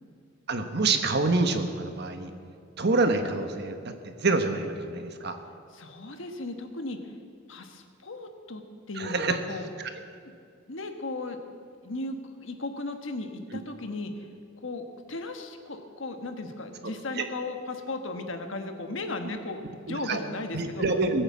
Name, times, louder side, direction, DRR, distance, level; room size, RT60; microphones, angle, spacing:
voice 1, 0.5-2.3 2.8-5.4 9.0-9.4 16.8-17.3 19.9-20.2 20.5-21.2, right 3 dB, 55° right, 7 dB, 1.3 m, -27 dB
voice 2, 5.7-7.0 7.5-8.6 8.9-9.6 10.7-11.4 11.8-14.2 14.6-20.8, left 2 dB, 70° left, 6 dB, 1.5 m, -36 dB
19.5 x 9.1 x 7.4 m, 2.3 s
head